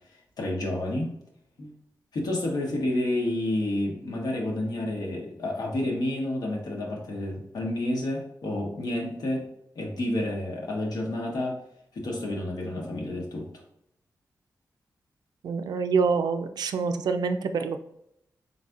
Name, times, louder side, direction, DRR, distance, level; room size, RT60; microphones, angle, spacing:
voice 1, 0.4-1.1 1.6-1.8 2.1-9.5 9.7-11.6 11.9-13.5, left 1 dB, 75° left, 0 dB, 1.1 m, -29 dB
voice 2, 15.4-18.0, right 5 dB, 85° right, 8 dB, 0.4 m, -26 dB
4.1 x 4.0 x 2.4 m, 0.77 s
wide cardioid pair, 125°, 7 cm